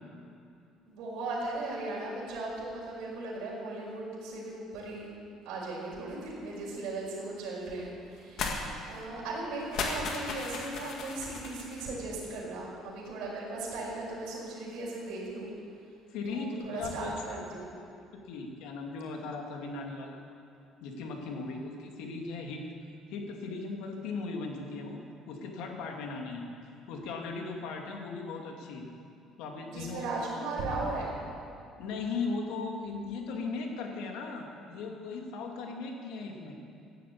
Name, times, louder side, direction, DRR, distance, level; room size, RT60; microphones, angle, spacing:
voice 1, 0.9-5.1 5.4-8.6 8.9-15.5 16.3-17.7 29.7-31.1, right 2 dB, 75° right, -7 dB, 5.3 m, -37 dB
sound 1, 8.4-8.6 8.9-9.0 9.6-11.9, left 4 dB, 50° left, 1.9 m, -35 dB
voice 2, 16.1-17.4 18.1-20.2 20.8-22.7 23.1-26.5 26.9-28.9 29.4-30.1 31.8-36.6, left 4 dB, 90° left, 2 dB, 2.4 m, -38 dB
16.0 x 10.5 x 8.6 m, 2.5 s
cardioid pair, 175°, 0 cm